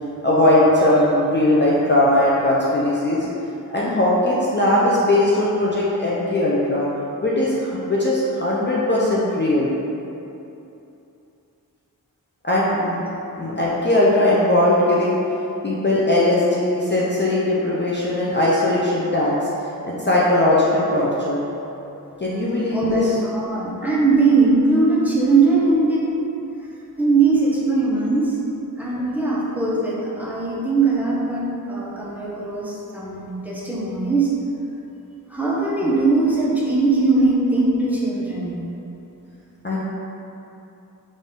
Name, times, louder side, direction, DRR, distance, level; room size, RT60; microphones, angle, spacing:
voice 1, 0.2-3.3 3.7-6.9 7.2-9.7 12.4-13.0 13.4-15.2 15.6-19.5 19.8-21.4 22.2-23.1 39.6-39.8, left 1 dB, 30° left, -7 dB, 0.5 m, -19 dB
voice 2, 22.7-26.0 27.0-28.4 28.8-34.3 35.3-38.7, right 3 dB, 5° right, -7 dB, 0.8 m, -20 dB
4.0 x 2.5 x 3.7 m, 2.9 s
wide cardioid pair, 45°, 36 cm